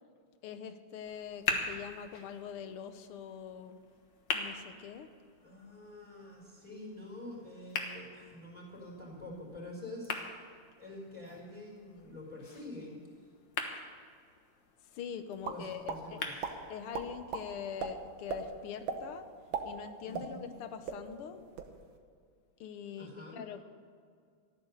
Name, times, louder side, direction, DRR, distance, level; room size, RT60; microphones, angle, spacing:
voice 1, 0.4-3.8 4.3-5.1 14.9-16.2 16.7-19.2 19.6-21.4 22.6-23.6, left 8 dB, 90° left, 10 dB, 1.8 m, -43 dB
sound 1, 1.0-17.0, left 4 dB, 60° left, 1.9 m, -43 dB
voice 2, 5.4-10.2 10.8-13.0 15.4-16.5 20.0-20.5 23.0-23.4, left 1 dB, 15° right, -2 dB, 4.3 m, -47 dB
sound 2, 15.4-16.0 16.4-16.5 16.9-17.4 17.8-17.9 18.3-18.4 18.9-19.0 19.4-20.6 20.9-21.0 21.4-21.7, right 7 dB, 70° right, 1.9 m, -36 dB
14.5 x 11.5 x 6.6 m, 2.1 s
omnidirectional pair, 2.4 m